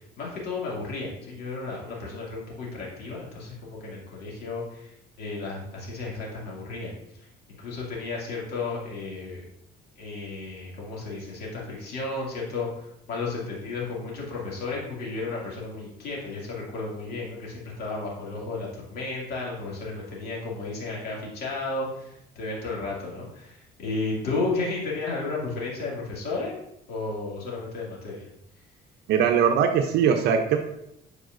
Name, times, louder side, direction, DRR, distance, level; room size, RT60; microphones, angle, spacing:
voice 1, 0.0-7.3 7.6-9.4 10.0-26.6 26.9-28.3, left 3 dB, 70° left, -4 dB, 2.3 m, -33 dB
voice 2, 29.1-30.6, right 7 dB, 80° right, 5 dB, 0.6 m, -21 dB
7.8 x 4.8 x 2.5 m, 0.78 s
cardioid pair, 110°, 17 cm